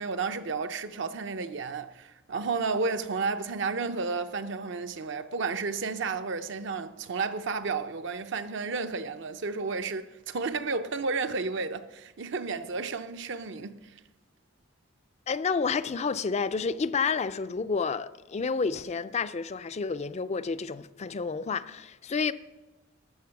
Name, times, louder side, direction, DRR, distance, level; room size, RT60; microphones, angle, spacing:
voice 1, 0.0-13.9, right 4 dB, 65° right, 0.6 m, -32 dB
voice 2, 15.3-22.3, left 5 dB, 35° left, 0.4 m, -30 dB
13.0 x 6.8 x 5.9 m
head